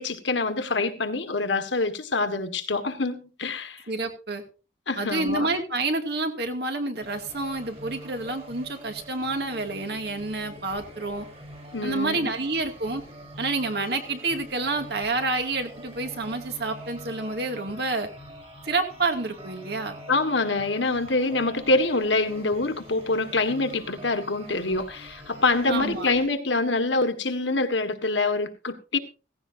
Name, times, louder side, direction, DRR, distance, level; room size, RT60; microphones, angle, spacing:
voice 1, 0.0-3.8 4.9-5.5 11.7-12.3 20.1-29.0, left 3 dB, 75° left, 1.7 m, -25 dB
voice 2, 3.9-4.4 5.0-11.3 11.8-13.0 13.4-18.1 18.6-20.0 25.7-26.1, right 3 dB, 55° right, 2.4 m, -28 dB
sound 1, 7.0-26.3, equal, 30° right, 4.0 m, -45 dB
16.5 x 15.5 x 2.7 m
head